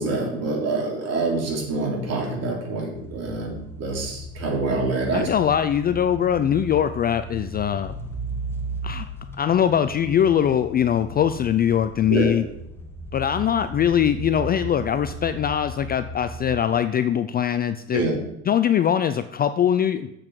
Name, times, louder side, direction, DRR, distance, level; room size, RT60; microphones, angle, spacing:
voice 1, 0.0-5.3 12.1-12.3 17.9-18.1, right 3 dB, 45° right, -1 dB, 3.3 m, -26 dB
sound 1, 2.9-16.6, right 2 dB, 5° left, 1.3 m, -36 dB
voice 2, 5.1-7.9 8.8-9.1 9.4-12.5 13.1-18.0 18.5-20.2, left 9 dB, 25° left, 11 dB, 0.3 m, -22 dB
7.5 x 7.3 x 4.7 m, 0.83 s
supercardioid pair, 100°, 36 cm